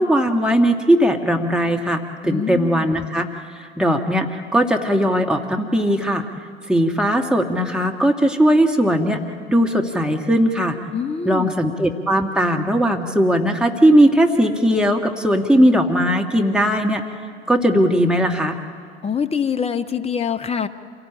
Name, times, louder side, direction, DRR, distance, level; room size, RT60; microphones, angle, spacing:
voice 1, 0.0-3.3 3.8-6.2 6.7-9.2 9.5-10.8 11.3-17.0 17.5-18.6, equal, 5° right, 2 dB, 1.7 m, -18 dB
voice 2, 2.2-2.9 10.9-11.5 19.0-20.7, left 7 dB, 20° left, 10 dB, 1.0 m, -24 dB
27.0 x 17.5 x 8.7 m, 2.1 s
figure-of-eight pair, 70°, 32 cm